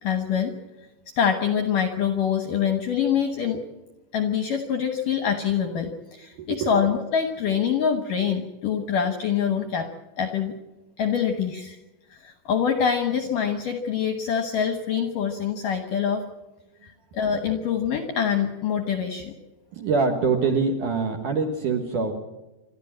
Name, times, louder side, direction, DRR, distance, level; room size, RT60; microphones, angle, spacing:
voice 1, 0.0-0.5 1.2-3.6 4.1-9.9 10.2-10.6 11.0-11.8 12.1-16.2 16.8-19.3, left 7 dB, 70° left, 6 dB, 2.1 m, -25 dB
voice 2, 6.3-6.7 19.7-22.1, right 4 dB, 60° right, 4 dB, 2.3 m, -24 dB
27.5 x 12.0 x 8.9 m, 1.0 s
omnidirectional pair, 5.4 m